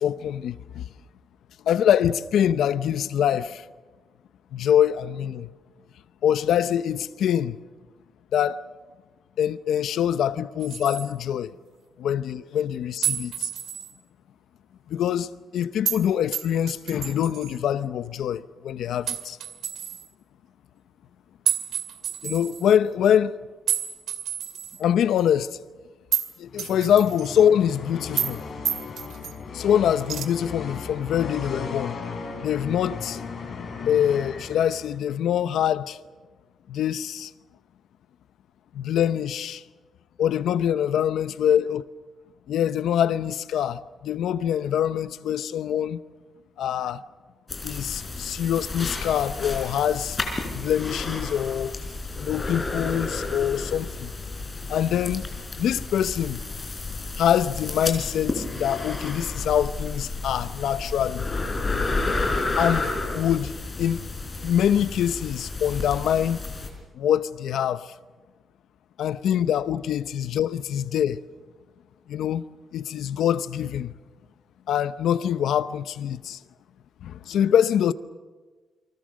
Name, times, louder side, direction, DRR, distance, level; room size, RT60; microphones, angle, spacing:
voice 1, 0.0-0.9 1.7-3.6 4.5-5.5 6.2-7.6 8.3-8.6 9.4-11.5 12.0-13.5 14.9-19.4 22.2-23.3 24.8-25.6 26.4-28.4 29.5-32.0 32.4-33.2 33.9-36.0 36.7-37.3 38.7-39.6 40.2-41.8 42.5-46.0 46.6-47.0 47.6-50.2 50.5-51.8 52.2-54.1 54.7-55.2 55.6-56.4 57.2-61.3 62.6-62.9 63.1-63.5 63.8-64.0 64.4-66.4 67.0-67.9 69.0-71.2 72.1-72.5 72.7-73.9 74.7-76.4 77.0-77.9, left 9 dB, 85° left, 0.8 m, -24 dB
sound 1, 10.6-11.1 13.0-13.9 15.8-16.0 16.3-17.5 19.1-20.0 21.4-22.7 23.7-24.8 25.2-25.3 26.1-26.3 26.6-27.4 28.2-28.4 28.6-29.3 30.1-30.2, right 9 dB, 75° right, 2.2 m, -29 dB
sound 2, 26.4-35.1, left 5 dB, 50° left, 4.7 m, -37 dB
sound 3, 47.5-66.7, left 3 dB, 25° left, 4.6 m, -31 dB
29.0 x 24.0 x 6.4 m
wide cardioid pair, 145°, 0 cm